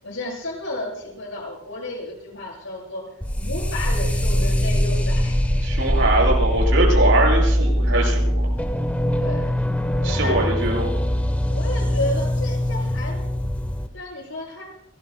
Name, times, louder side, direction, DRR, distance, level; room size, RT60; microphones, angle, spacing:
voice 1, 0.0-3.0 3.4-5.4 9.2-9.5 10.0-10.8 11.4-13.5 13.9-14.7, left 1 dB, 80° left, -1 dB, 7.8 m, -32 dB
sound 1, 3.2-13.9, equal, 10° left, 1.0 m, -22 dB
voice 2, 5.6-8.4 10.0-10.9, right 2 dB, 75° right, -1 dB, 7.7 m, -22 dB
27.5 x 20.0 x 2.3 m, 0.76 s
head